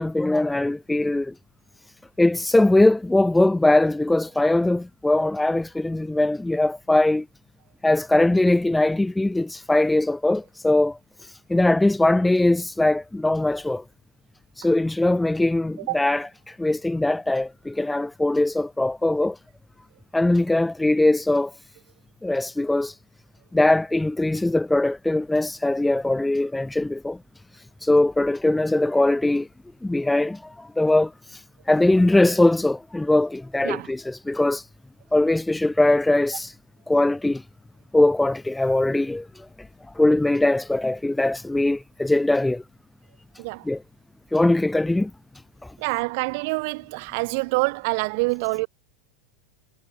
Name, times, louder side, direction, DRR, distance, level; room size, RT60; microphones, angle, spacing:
voice 1, 0.0-1.3 2.2-7.2 7.8-13.8 14.6-19.4 20.1-21.5 22.2-22.9 23.5-27.2 27.8-29.5 29.8-34.6 35.1-36.5 36.9-37.4 37.9-39.5 40.0-42.6 43.6-43.8 44.3-45.1, left 2 dB, 5° left, 2.5 m, -21 dB
voice 2, 45.8-48.7, right 29 dB, 60° right, 3.9 m, -26 dB
hypercardioid pair, 110°, 0 cm